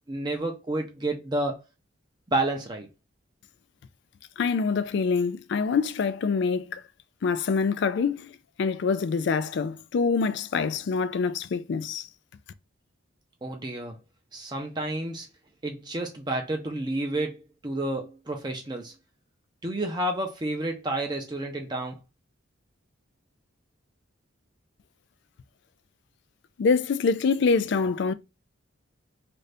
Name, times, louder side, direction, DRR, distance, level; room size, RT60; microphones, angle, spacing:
voice 1, 0.1-1.6 2.3-2.9 13.4-14.0 14.3-15.3 15.6-18.9 19.6-22.0, right 1 dB, 20° right, 0.5 m, -30 dB
voice 2, 4.4-6.8 7.2-8.3 8.6-12.1 26.6-28.1, left 5 dB, 55° left, 0.3 m, -25 dB
2.7 x 2.5 x 3.3 m
head